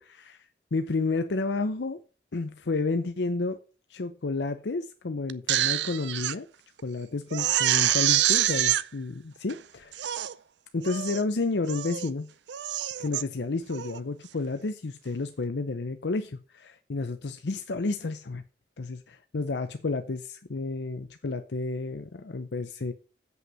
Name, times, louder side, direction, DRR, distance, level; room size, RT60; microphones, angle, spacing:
voice 1, 0.7-2.0 2.3-3.6 3.9-6.5 6.8-9.6 10.7-12.3 13.0-18.4 18.8-22.9, left 3 dB, 75° left, 0.7 m, -31 dB
Crying sobbing, 5.3-6.3 6.8-6.9 7.3-8.8 9.5-9.6 9.9-10.3 10.8-11.2 11.7-12.1 12.5-13.2 13.7-14.0, right 13 dB, 80° right, 0.5 m, -26 dB
8.0 x 5.6 x 7.2 m
head